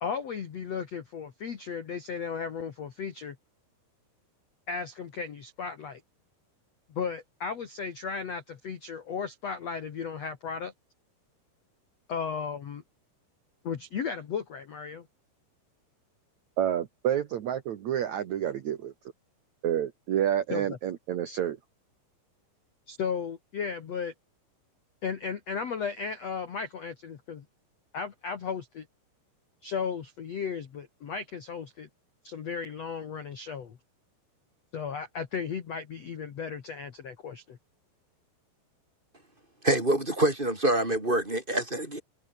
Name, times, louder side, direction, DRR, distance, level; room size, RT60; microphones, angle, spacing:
voice 1, 0.0-3.4 4.7-6.0 6.9-10.7 12.1-12.8 13.6-15.1 20.5-20.8 22.9-24.1 25.0-27.5 27.9-28.9 29.6-31.9 32.2-33.8 34.7-37.6, left 6 dB, 50° left, 2.1 m, -35 dB
voice 2, 16.6-18.9 19.6-21.6, right 10 dB, 70° right, 1.7 m, -29 dB
voice 3, 39.6-42.0, right 1 dB, 10° right, 5.0 m, -26 dB
omnidirectional pair, 5.4 m